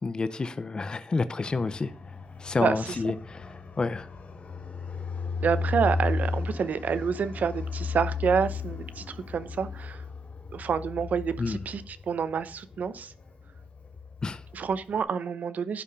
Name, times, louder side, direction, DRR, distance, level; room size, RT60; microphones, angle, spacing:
voice 1, 0.0-1.9 2.4-3.4 3.8-4.1 11.4-11.6 14.2-14.4, left 3 dB, 30° left, 0.7 m, -29 dB
Fixed-wing aircraft airplane, 1.5-15.0, left 4 dB, 55° left, 3.2 m, -35 dB
voice 2, 2.6-3.1 5.4-10.0 10.5-13.1 14.5-15.8, right 6 dB, 75° right, 0.9 m, -28 dB
11.5 x 5.7 x 5.4 m
wide cardioid pair, 170°, 3 cm